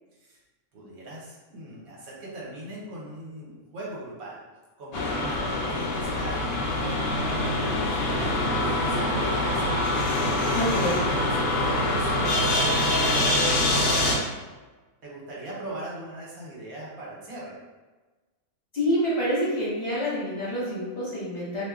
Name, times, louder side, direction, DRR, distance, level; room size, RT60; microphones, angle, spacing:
voice 1, 0.7-4.4 4.8-9.8 11.4-13.9 15.0-17.6, right 1 dB, 70° right, -5 dB, 1.2 m, -39 dB
sound 1, 4.9-14.2, left 1 dB, 80° left, 0.5 m, -25 dB
voice 2, 10.5-11.0 18.7-21.7, equal, 45° left, -8 dB, 1.0 m, -27 dB
2.6 x 2.1 x 3.4 m, 1.2 s
omnidirectional pair, 1.6 m